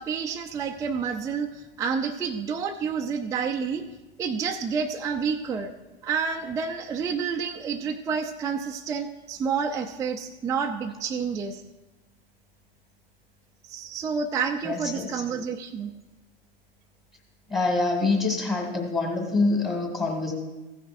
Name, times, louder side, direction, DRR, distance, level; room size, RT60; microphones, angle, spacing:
voice 1, 0.0-3.9 4.2-5.7 6.0-11.6 13.7-15.9, right 6 dB, 10° right, 2 dB, 0.4 m, -29 dB
voice 2, 14.6-15.1 17.5-20.3, left 3 dB, 15° left, 0 dB, 1.6 m, -25 dB
15.0 x 9.9 x 2.6 m, 1.1 s
hypercardioid pair, 105°, 30 cm